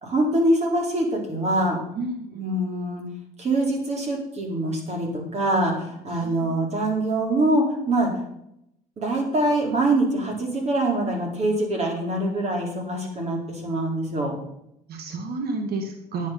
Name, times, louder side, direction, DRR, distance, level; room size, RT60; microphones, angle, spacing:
voice 1, 0.0-1.8 2.3-3.0 3.4-8.1 9.0-14.3, right 1 dB, 40° right, 0 dB, 4.0 m, -24 dB
voice 2, 1.9-2.5 6.1-6.6 14.9-16.3, right 3 dB, 65° right, 4 dB, 1.9 m, -31 dB
9.8 x 9.4 x 5.8 m, 0.79 s
cardioid pair, 110°, 17 cm